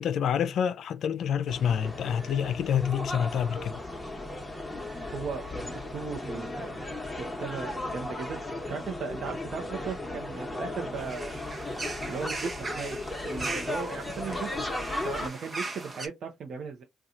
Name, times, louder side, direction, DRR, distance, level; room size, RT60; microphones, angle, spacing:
voice 1, 0.0-3.8, left 8 dB, 70° left, 0.4 m, -27 dB
sound 1, 1.5-15.3, left 2 dB, 10° left, 1.0 m, -36 dB
voice 2, 5.1-6.8 7.4-11.3 12.1-14.7 15.0-16.8, right 5 dB, 60° right, 0.7 m, -37 dB
sound 2, 11.0-16.1, right 2 dB, 30° right, 0.8 m, -39 dB
2.8 x 2.3 x 3.7 m
cardioid pair, 90°, 0 cm